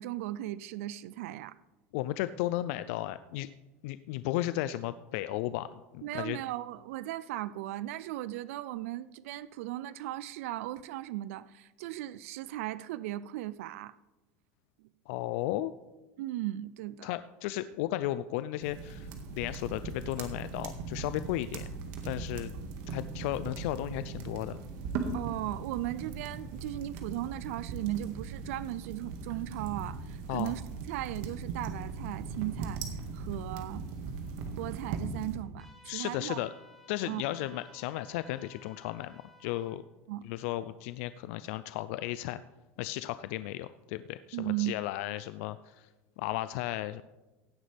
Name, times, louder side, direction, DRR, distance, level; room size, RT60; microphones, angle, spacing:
voice 1, 0.0-1.6 6.0-14.0 16.2-17.1 25.1-30.6 30.9-32.8 33.1-33.8 34.6-36.4 37.1-37.3 40.1-40.3 44.3-44.8, right 15 dB, 85° right, 0.4 m, -37 dB
voice 2, 1.9-3.5 3.8-5.7 5.9-6.4 15.1-15.7 17.0-21.7 22.0-22.5 22.9-24.6 30.3-30.5 35.8-36.5 36.9-39.8 40.2-42.4 42.8-45.9 46.2-47.0, left 15 dB, 70° left, 0.4 m, -34 dB
sound 1, 18.6-35.4, right 4 dB, 60° right, 1.8 m, -39 dB
sound 2, 35.6-39.8, left 2 dB, 5° left, 1.8 m, -58 dB
16.5 x 9.5 x 3.4 m
supercardioid pair, 140°, 7 cm